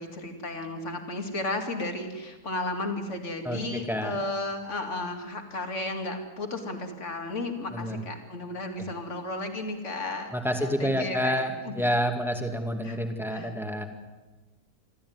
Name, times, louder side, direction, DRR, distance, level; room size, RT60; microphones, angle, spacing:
voice 1, 0.0-11.7 12.8-13.0 13.3-13.5, left 2 dB, 40° left, 5 dB, 2.8 m, -34 dB
voice 2, 3.4-4.1 7.7-8.0 8.8-8.9 10.3-13.8, equal, ahead, 5 dB, 2.1 m, -29 dB
27.0 x 13.5 x 9.5 m, 1.2 s
omnidirectional pair, 1.9 m